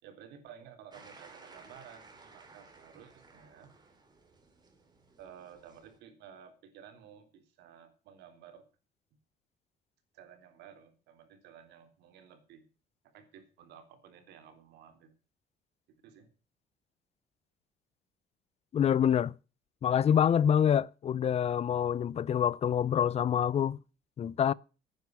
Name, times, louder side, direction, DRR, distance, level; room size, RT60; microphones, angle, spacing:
voice 1, 0.0-3.8 5.2-8.7 10.1-12.7 13.0-15.1 15.9-16.3, right 8 dB, 80° right, 3.7 m, -54 dB
sound 1, 0.9-6.0, right 3 dB, 25° right, 3.8 m, -57 dB
voice 2, 18.7-19.3 19.8-23.8 24.2-24.5, left 9 dB, 40° left, 0.6 m, -26 dB
11.0 x 9.5 x 7.6 m
cardioid pair, 110°, 17 cm